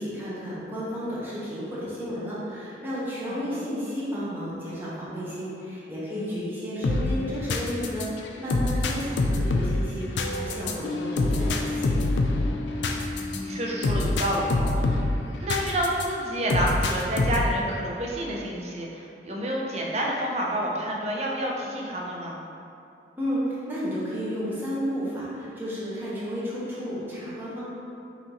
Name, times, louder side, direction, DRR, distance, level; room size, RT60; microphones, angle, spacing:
voice 1, 0.0-11.9 23.2-27.6, equal, 10° right, -9 dB, 1.0 m, -32 dB
voice 2, 3.3-3.6 6.1-6.4 13.3-15.0 15.4-22.4, right 1 dB, 35° right, -2 dB, 0.6 m, -29 dB
sound 1, 6.8-16.1 16.5-17.6, left 2 dB, 80° left, 0.4 m, -26 dB
5.7 x 2.7 x 2.9 m, 2.6 s
head